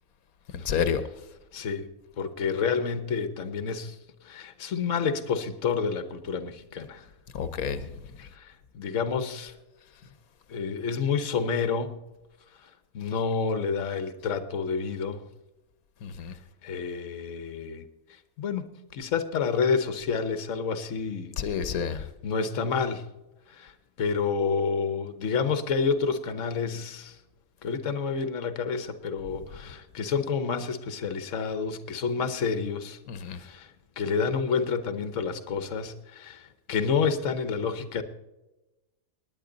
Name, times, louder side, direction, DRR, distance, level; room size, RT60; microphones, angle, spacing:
voice 1, 0.5-1.0 7.3-7.8 16.0-16.3 21.4-22.0 33.1-33.4, left 7 dB, 90° left, 11 dB, 1.4 m, -29 dB
voice 2, 1.5-1.9 2.2-4.0 4.2-7.1 8.2-9.5 10.5-12.0 12.6-12.7 12.9-15.3 16.6-17.9 18.4-18.7 18.9-21.4 21.9-23.0 23.5-27.2 27.6-33.0 33.2-38.0, left 5 dB, 65° left, 11 dB, 1.4 m, -29 dB
19.0 x 9.8 x 3.9 m, 1.0 s
omnidirectional pair, 1.5 m